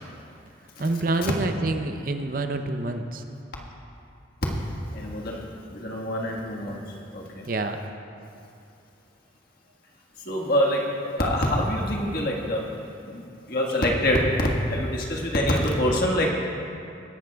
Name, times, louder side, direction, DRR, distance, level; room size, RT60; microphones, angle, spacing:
voice 1, 0.8-3.2 7.5-7.8, right 2 dB, 45° right, 6 dB, 0.6 m, -27 dB
voice 2, 4.9-7.5 10.2-12.7 13.0-16.3, equal, 50° left, -1 dB, 1.6 m, -25 dB
23.0 x 11.5 x 2.3 m, 2.6 s
head